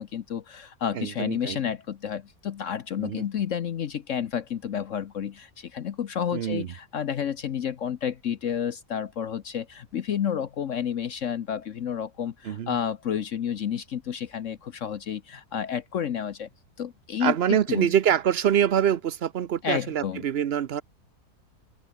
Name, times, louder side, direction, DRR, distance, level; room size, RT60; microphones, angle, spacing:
voice 1, 0.0-16.5 16.8-17.9 19.6-20.3, left 8 dB, 60° left, 1.1 m, -30 dB
voice 2, 0.9-1.6 3.0-3.2 6.3-6.7 12.5-12.7 17.2-20.8, right 9 dB, 55° right, 0.7 m, -25 dB
open air
omnidirectional pair, 1.7 m